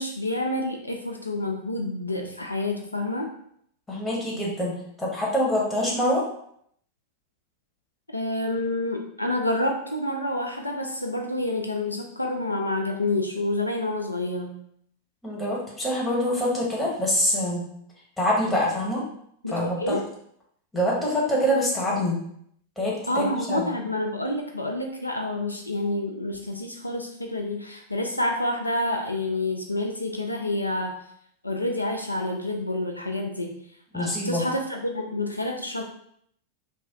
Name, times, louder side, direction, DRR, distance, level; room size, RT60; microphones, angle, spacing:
voice 1, 0.0-3.3 8.1-14.6 19.4-20.1 23.1-31.0 31.4-33.6 33.9-35.8, left 1 dB, 85° left, 2 dB, 0.3 m, -28 dB
voice 2, 3.9-6.2 15.2-17.6 18.2-19.0 19.5-20.0 20.7-22.2 22.8-23.7 33.9-34.4, left 1 dB, 10° left, -4 dB, 1.0 m, -25 dB
3.1 x 2.2 x 2.7 m, 0.68 s
figure-of-eight pair, 90°, 0 cm